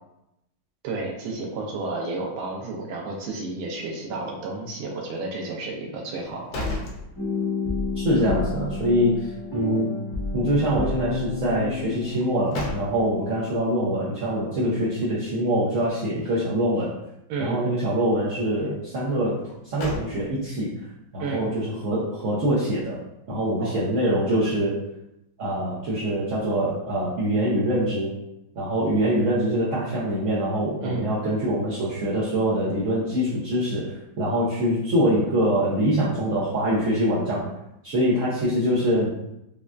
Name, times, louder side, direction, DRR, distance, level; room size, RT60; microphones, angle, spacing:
voice 1, 0.8-6.6 17.3-17.6 21.2-21.7 23.6-23.8 30.8-31.1, right 3 dB, 90° right, -1 dB, 1.5 m, -31 dB
sound 1, 6.1-7.8 8.2-8.3 12.1-13.3 19.4-20.6, left 2 dB, 70° left, 1.2 m, -35 dB
sound 2, 7.2-12.6, left 3 dB, 40° left, 0.3 m, -30 dB
voice 2, 8.0-9.3 9.5-9.9 10.3-16.9 17.4-19.4 19.6-20.7 21.1-23.0 23.3-24.8 25.4-28.1 28.6-37.4 37.8-39.1, equal, 70° right, -8 dB, 0.7 m, -24 dB
5.1 x 2.2 x 2.3 m, 0.85 s
omnidirectional pair, 2.2 m